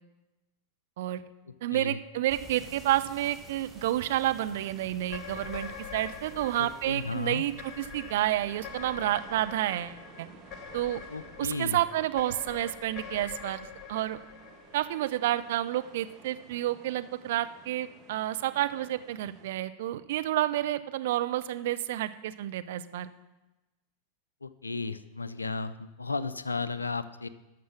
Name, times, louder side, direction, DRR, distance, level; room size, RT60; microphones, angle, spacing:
voice 1, 1.6-10.3 10.7-11.0 11.4-14.2 14.7-23.1, right 14 dB, 55° right, 11 dB, 0.5 m, -30 dB
sound 1, 2.3-9.2, right 3 dB, 15° right, 1.1 m, -52 dB
sound 2, 5.1-15.5, left 7 dB, 20° left, 1.2 m, -45 dB
sound 3, 6.0-19.5, right 5 dB, 30° right, 1.4 m, -54 dB
voice 2, 6.6-7.4 11.1-11.8 24.4-27.3, left 4 dB, 80° left, 15 dB, 0.4 m, -34 dB
12.5 x 6.0 x 6.1 m, 1.0 s
figure-of-eight pair, 90°, 0 cm